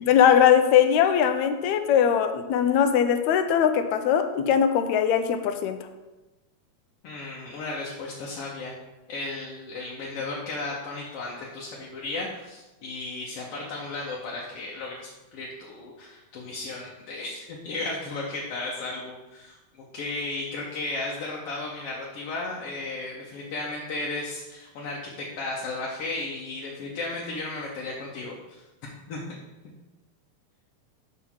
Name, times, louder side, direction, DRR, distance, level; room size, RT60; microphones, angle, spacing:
voice 1, 0.0-5.8, left 8 dB, 80° left, 8 dB, 1.8 m, -20 dB
voice 2, 7.0-8.7 9.1-28.6 29.1-29.2, left 2 dB, 65° left, -3 dB, 1.7 m, -34 dB
5.7 x 5.5 x 6.2 m, 1.1 s
omnidirectional pair, 3.3 m